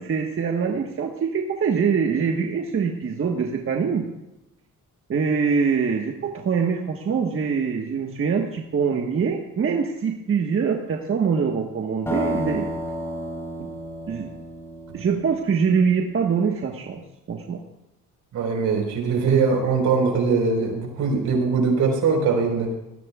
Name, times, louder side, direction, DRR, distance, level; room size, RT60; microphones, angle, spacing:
voice 1, 0.0-4.1 5.1-12.7 13.6-13.7 14.1-14.3 14.9-17.0 17.3-17.6, right 6 dB, 45° right, 1 dB, 1.4 m, -24 dB
sound 1, 12.1-15.8, right 1 dB, 10° left, 3.9 m, -31 dB
voice 2, 18.3-22.7, right 5 dB, 75° right, 2 dB, 4.5 m, -21 dB
20.0 x 15.0 x 2.4 m, 0.91 s
cardioid pair, 90°, 30 cm